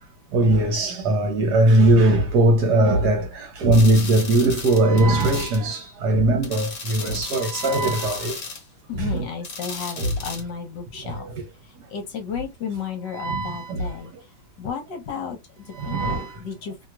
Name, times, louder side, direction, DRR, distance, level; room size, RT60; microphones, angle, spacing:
voice 1, 0.3-8.3 9.0-9.2 10.0-10.1 13.2-13.8 15.8-16.2, right 1 dB, 65° right, 1.3 m, -19 dB
sound 1, 3.7-5.6 6.4-8.6 9.4-10.4, left 4 dB, 50° left, 1.5 m, -35 dB
voice 2, 8.9-11.3 11.6-14.3 14.6-16.0 16.3-16.9, left 6 dB, 65° left, 1.5 m, -33 dB
3.1 x 2.9 x 2.4 m
omnidirectional pair, 2.1 m